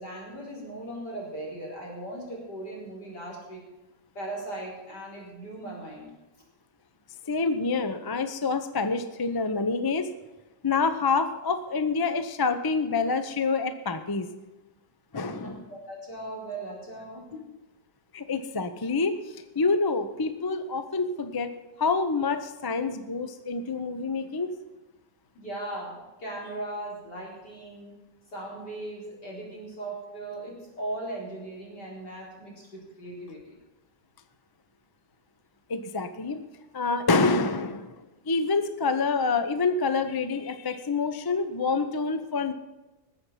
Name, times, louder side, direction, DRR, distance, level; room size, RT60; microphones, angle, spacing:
voice 1, 0.0-3.6 4.1-6.1 15.3-17.4 25.3-27.9 28.3-33.4, right 1 dB, 70° left, -4 dB, 5.0 m, -38 dB
voice 2, 7.2-10.1 10.6-14.3 15.1-15.6 18.1-19.2 19.5-21.5 21.8-24.5 35.7-36.4 36.7-42.5, left 4 dB, 35° left, 9 dB, 0.3 m, -27 dB
20.0 x 7.8 x 5.7 m, 1.1 s
omnidirectional pair, 1.9 m